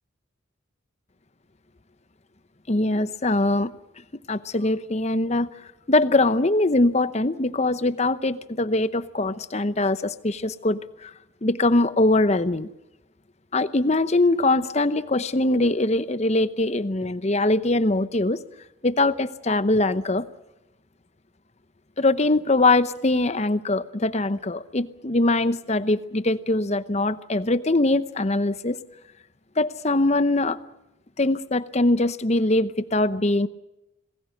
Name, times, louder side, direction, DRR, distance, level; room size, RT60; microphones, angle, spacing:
voice 1, 2.7-3.7 4.3-5.5 5.9-11.1 11.4-12.7 13.5-18.4 18.8-20.3 22.0-28.8 29.6-30.6 31.2-33.5, left 2 dB, 30° left, 14 dB, 0.8 m, -22 dB
27.0 x 20.0 x 6.5 m, 0.93 s
head